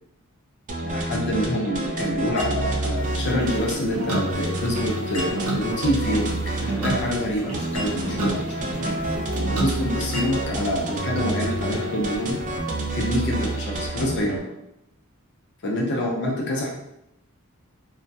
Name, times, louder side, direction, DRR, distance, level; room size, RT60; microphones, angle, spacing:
sound 1, 0.7-14.4, right 1 dB, 35° right, 0.3 m, -29 dB
voice 1, 0.8-9.0 9.5-12.4 12.9-14.4 15.6-16.7, left 1 dB, 55° left, -2 dB, 0.6 m, -26 dB
sound 2, 2.4-3.3 5.1-5.9 7.7-8.4 10.1-10.9, left 1 dB, 85° left, 1.0 m, -38 dB
sound 3, 3.0-13.6, right 2 dB, 85° right, 0.6 m, -33 dB
2.2 x 2.1 x 2.6 m, 0.82 s
head